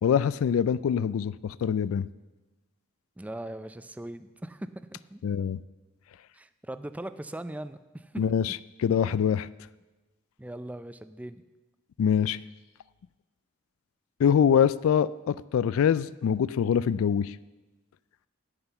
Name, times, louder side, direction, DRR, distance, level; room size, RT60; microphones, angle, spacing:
voice 1, 0.0-2.1 5.2-5.6 8.2-9.5 12.0-12.4 14.2-17.4, left 8 dB, 85° left, 18 dB, 0.3 m, -24 dB
voice 2, 3.2-5.2 6.3-8.2 10.4-11.4, right 1 dB, 5° right, 12 dB, 0.4 m, -39 dB
9.9 x 9.7 x 6.9 m, 1.2 s
head